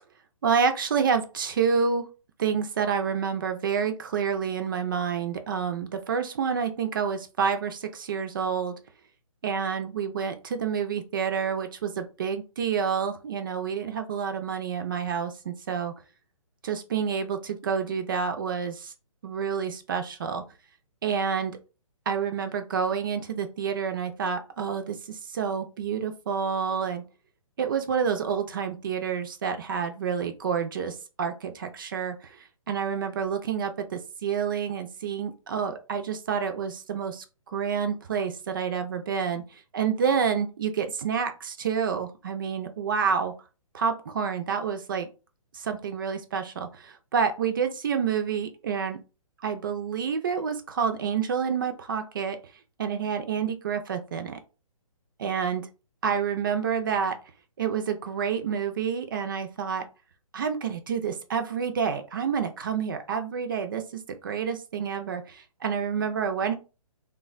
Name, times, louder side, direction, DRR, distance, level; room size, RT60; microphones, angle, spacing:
voice 1, 0.4-2.1 2.4-8.7 9.4-15.9 16.6-18.9 19.2-20.4 21.0-21.6 22.1-27.0 27.6-43.3 43.7-45.1 45.5-49.0 49.4-52.4 52.8-54.4 55.2-55.7 56.0-57.2 57.6-59.9 60.3-66.5, right 6 dB, 35° right, 7 dB, 0.4 m, -28 dB
3.2 x 2.2 x 2.4 m, 0.31 s
figure-of-eight pair, 140°, 18 cm